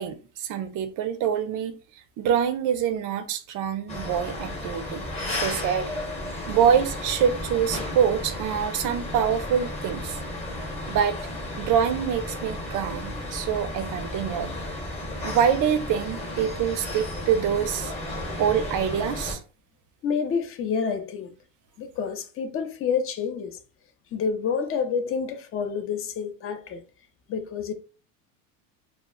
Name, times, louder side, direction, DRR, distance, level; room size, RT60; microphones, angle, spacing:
voice 1, 0.0-1.7 2.2-5.1 5.3-5.9 6.5-10.2 10.9-11.2 11.6-14.5 15.2-17.9 18.4-19.4, right 8 dB, 45° right, 0.5 m, -25 dB
sound 1, 3.9-19.4, left 1 dB, 15° left, 0.8 m, -33 dB
voice 2, 20.0-21.3 21.8-23.6 24.1-26.8 27.3-27.7, left 6 dB, 30° left, 0.5 m, -28 dB
2.0 x 2.0 x 3.7 m
supercardioid pair, 105°, 42 cm